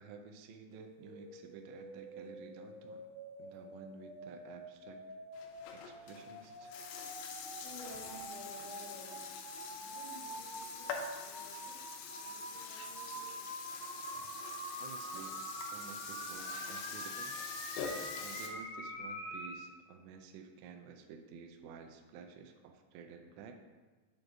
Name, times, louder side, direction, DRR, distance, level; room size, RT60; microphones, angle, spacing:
voice 1, 0.0-3.1 3.4-5.0 5.7-6.7 14.8-17.3 18.2-23.6, right 5 dB, 85° right, 4 dB, 2.6 m, -52 dB
sound 1, 0.7-19.6, right 1 dB, 60° right, 2.9 m, -46 dB
Burping eructation, 5.3-18.5, left 6 dB, 85° left, 2.7 m, -45 dB
voice 2, 7.6-9.4 9.7-13.4 14.1-14.2, equal, 55° left, -8 dB, 2.0 m, -54 dB
7.6 x 7.2 x 2.6 m, 1.3 s
omnidirectional pair, 5.5 m